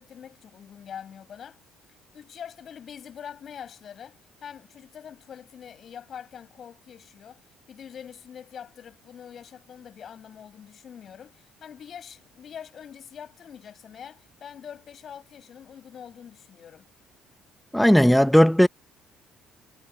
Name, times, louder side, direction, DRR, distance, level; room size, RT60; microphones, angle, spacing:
voice 1, 0.0-1.6 2.1-16.9, left 8 dB, 45° left, 6.3 m, -44 dB
voice 2, 17.7-18.7, equal, ahead, 1.2 m, -16 dB
figure-of-eight pair, 50°, 0 cm